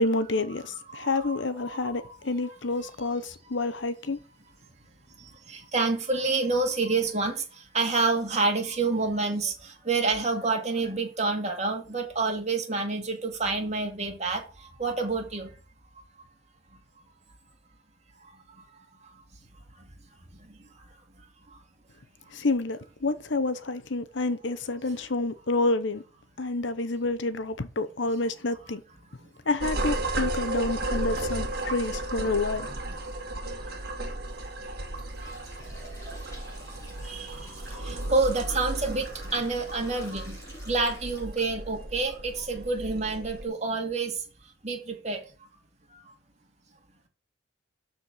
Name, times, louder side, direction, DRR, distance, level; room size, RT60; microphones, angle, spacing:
voice 1, 0.0-4.2 22.3-26.0 26.4-28.8 29.5-32.7, left 2 dB, 70° left, 0.9 m, -28 dB
voice 2, 0.9-2.1 5.5-7.4 7.7-14.4 14.8-15.5 31.3-31.4 35.2-35.3 37.0-37.5 37.8-40.4 40.7-44.1 44.6-45.2, right 3 dB, 35° right, 2.4 m, -28 dB
sound 1, 29.6-43.4, right 2 dB, 50° right, 2.1 m, -34 dB
sound 2, 34.0-34.2 34.7-41.8 42.3-42.4 43.2-43.3 43.9-44.0 44.4-44.6, equal, 15° left, 5.6 m, -48 dB
12.5 x 4.5 x 6.3 m
head